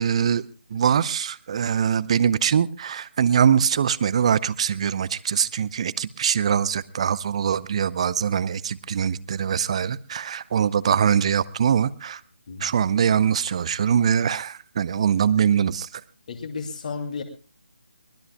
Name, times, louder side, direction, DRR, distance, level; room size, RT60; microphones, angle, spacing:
voice 1, 0.0-12.2 12.6-15.9, right 8 dB, 30° right, 19 dB, 0.6 m, -23 dB
voice 2, 16.3-17.2, left 5 dB, 40° left, 6 dB, 2.6 m, -32 dB
23.5 x 19.5 x 2.3 m, 0.35 s
figure-of-eight pair, 150°, 6 cm